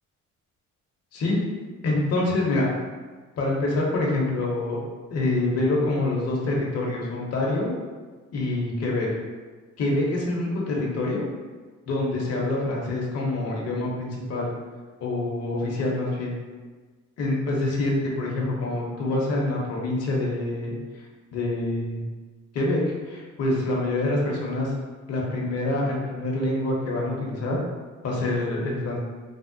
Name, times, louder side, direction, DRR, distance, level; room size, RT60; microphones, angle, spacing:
voice 1, 1.8-2.7 3.4-4.8 5.1-7.7 8.3-9.1 9.8-11.2 11.9-14.5 15.0-16.3 17.2-20.7 21.3-22.0 22.5-24.7 25.1-27.6 28.0-29.0, left 2 dB, 55° left, -3 dB, 0.7 m, -26 dB
3.3 x 2.0 x 2.6 m, 1.4 s
cardioid pair, 90°, 30 cm